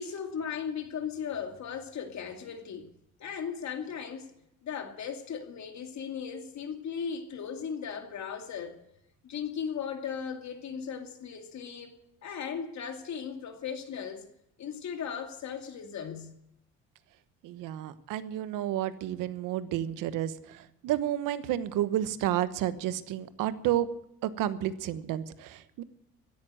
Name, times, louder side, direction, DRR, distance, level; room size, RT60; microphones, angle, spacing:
voice 1, 0.0-2.9 3.2-4.3 4.6-8.8 9.2-11.9 12.2-14.3 14.6-16.3, left 7 dB, 55° left, 2.5 m, -37 dB
voice 2, 17.4-23.9 24.2-25.8, right 12 dB, 75° right, 1.2 m, -31 dB
16.0 x 11.0 x 7.7 m
supercardioid pair, 70°, 33 cm